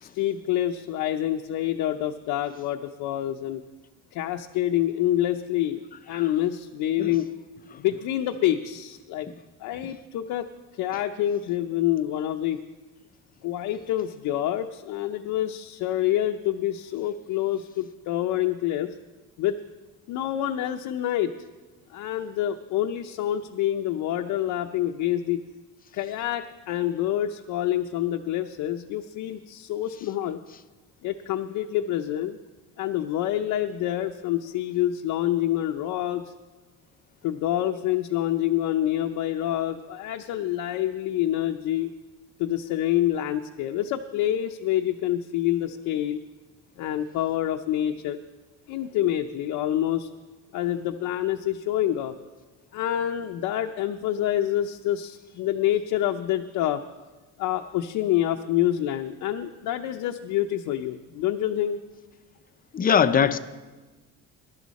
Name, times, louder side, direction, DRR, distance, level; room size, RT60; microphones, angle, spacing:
voice 1, 0.0-3.6 4.1-7.3 7.8-9.3 9.6-10.5 10.7-12.6 13.4-19.0 19.4-19.6 20.1-21.4 21.9-25.4 25.9-30.4 31.0-32.4 32.8-36.3 37.2-41.9 42.4-46.2 46.8-48.2 48.7-50.1 50.5-52.2 52.7-56.8 57.4-61.8, left 12 dB, 75° left, 4 dB, 0.7 m, -27 dB
voice 2, 62.7-63.4, left 7 dB, 25° left, 12 dB, 0.6 m, -21 dB
21.0 x 11.5 x 4.2 m, 1.3 s
cardioid pair, 135°, 33 cm